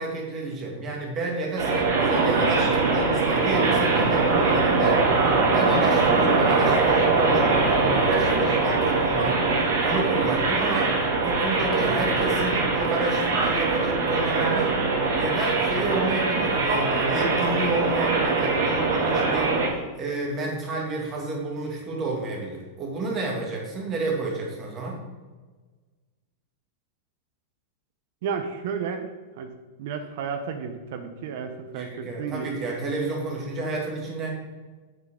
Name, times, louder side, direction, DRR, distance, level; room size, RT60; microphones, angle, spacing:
voice 1, 0.0-11.0 11.2-14.8 15.1-25.0 31.7-34.3, right 2 dB, 25° right, -1 dB, 2.4 m, -30 dB
sound 1, 1.6-19.7, right 3 dB, 75° right, 2.7 m, -22 dB
voice 2, 28.2-29.1 29.4-29.5 29.8-32.6, right 6 dB, 60° right, 7 dB, 0.9 m, -32 dB
7.8 x 7.6 x 3.9 m, 1.3 s
supercardioid pair, 150°, 0 cm